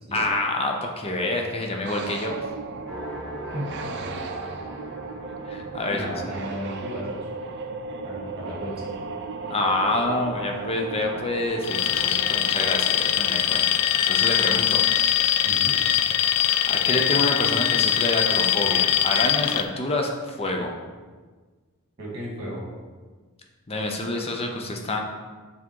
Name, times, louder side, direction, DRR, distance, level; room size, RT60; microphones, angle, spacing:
voice 1, 0.1-2.4 5.5-6.1 9.5-13.8 14.1-14.8 16.7-20.7 23.7-25.0, left 2 dB, 25° left, 2 dB, 0.6 m, -27 dB
sound 1, 1.8-14.8, right 4 dB, 50° right, 0.5 m, -36 dB
sound 2, 2.8-8.2, equal, 5° left, 1.2 m, -41 dB
voice 2, 3.5-4.2 5.9-7.3 8.0-9.0 15.4-15.8 20.4-20.6 22.0-22.6, equal, 25° right, -5 dB, 1.9 m, -35 dB
Alarm, 11.6-19.6, left 11 dB, 85° left, 0.4 m, -22 dB
6.1 x 3.6 x 4.6 m, 1.4 s
head